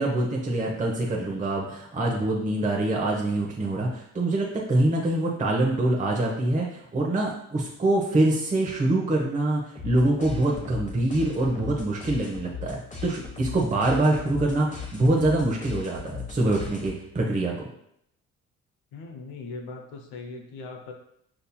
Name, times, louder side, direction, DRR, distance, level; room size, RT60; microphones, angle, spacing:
voice 1, 0.0-17.7, right 2 dB, 20° right, -1 dB, 0.8 m, -25 dB
sound 1, 9.7-17.2, left 6 dB, 20° left, 1.0 m, -38 dB
voice 2, 18.9-20.9, left 3 dB, 80° left, 3 dB, 0.7 m, -39 dB
5.3 x 2.8 x 2.2 m, 0.74 s
hypercardioid pair, 55°, 39 cm